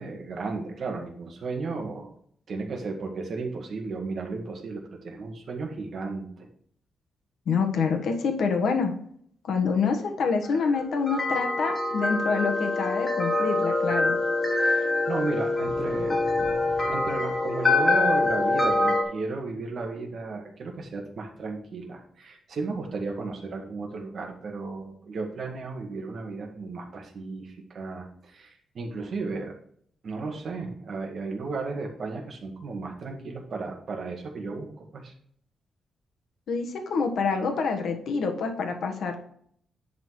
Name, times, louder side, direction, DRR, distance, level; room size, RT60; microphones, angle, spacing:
voice 1, 0.0-2.1 2.5-6.5 14.5-16.2 16.9-29.5 30.0-35.1, right 3 dB, 45° right, 2 dB, 1.8 m, -34 dB
voice 2, 7.5-8.9 9.4-14.2 36.5-39.1, left 5 dB, 65° left, 4 dB, 1.4 m, -26 dB
sound 1, 10.4-19.0, left 2 dB, 15° left, 1.5 m, -25 dB
10.5 x 4.1 x 4.8 m, 0.62 s
wide cardioid pair, 170°, 0 cm